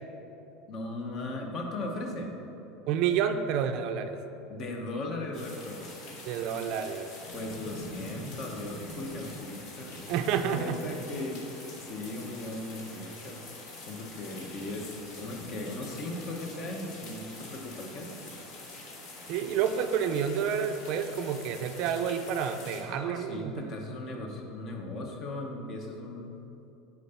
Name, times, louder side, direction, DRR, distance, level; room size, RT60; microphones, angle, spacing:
voice 1, 0.7-2.4 4.5-6.1 7.3-10.0 10.5-11.4 11.8-13.4 13.8-18.1 22.8-26.4, left 2 dB, 40° left, 2 dB, 1.0 m, -38 dB
voice 2, 2.9-4.2 6.2-7.1 10.1-10.8 19.3-23.7, right 8 dB, 55° right, 7 dB, 0.5 m, -29 dB
sound 1, 5.3-22.8, left 2 dB, 60° left, 1.7 m, -45 dB
9.2 x 3.9 x 5.7 m, 3.0 s
supercardioid pair, 140°, 0 cm